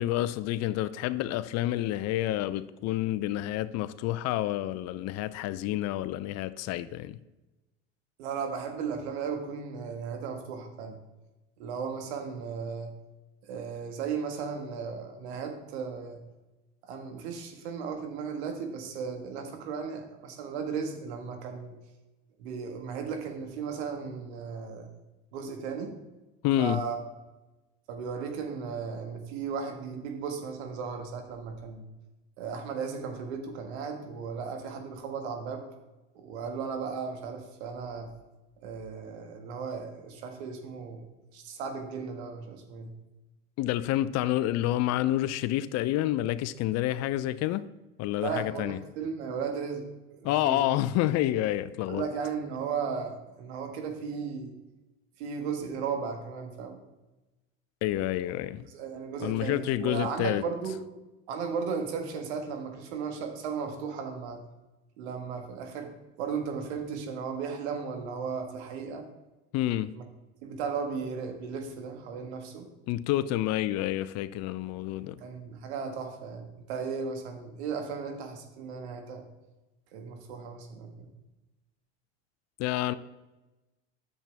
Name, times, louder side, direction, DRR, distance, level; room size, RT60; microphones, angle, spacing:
voice 1, 0.0-7.2 26.4-26.8 43.6-47.6 48.0-48.8 50.2-52.0 57.8-58.6 59.2-60.4 69.5-69.9 72.9-75.2 82.6-82.9, left 14 dB, 50° left, 0.6 m, -28 dB
voice 2, 8.2-11.0 11.6-12.9 13.4-16.2 16.8-21.7 22.4-24.9 25.3-26.0 26.6-27.0 27.9-31.9 32.4-35.6 36.1-38.1 38.6-41.1 41.3-42.9 48.2-50.6 51.9-54.5 55.2-56.8 58.7-60.8 61.3-64.4 65.0-69.1 69.9-70.0 70.4-72.7 75.2-79.2 79.9-81.1, right 6 dB, 75° right, 1.7 m, -35 dB
10.0 x 7.4 x 3.5 m
hypercardioid pair, 90°, 33 cm